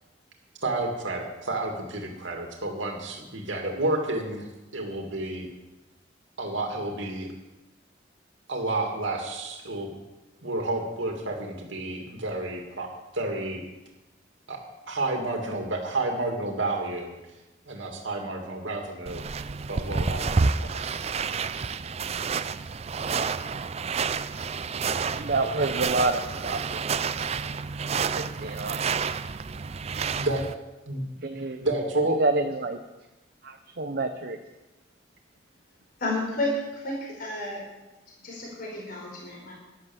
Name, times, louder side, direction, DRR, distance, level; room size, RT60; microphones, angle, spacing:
voice 1, 0.6-5.5 6.4-7.3 8.5-9.9 10.4-13.6 14.5-14.6 14.9-17.1 17.7-19.2 19.7-21.0 30.2-30.5 30.9-31.0 31.6-32.2, right 2 dB, 85° right, 2 dB, 2.5 m, -30 dB
sound 1, 19.1-30.5, right 5 dB, 35° right, 0.4 m, -29 dB
voice 2, 25.1-27.0 28.1-28.8 31.2-31.6 32.1-32.8 33.4-34.4, right 2 dB, 55° right, 5 dB, 0.8 m, -28 dB
voice 3, 36.0-37.6 38.2-39.5, left 1 dB, 50° left, -3 dB, 4.6 m, -31 dB
12.5 x 10.5 x 7.3 m, 1.1 s
head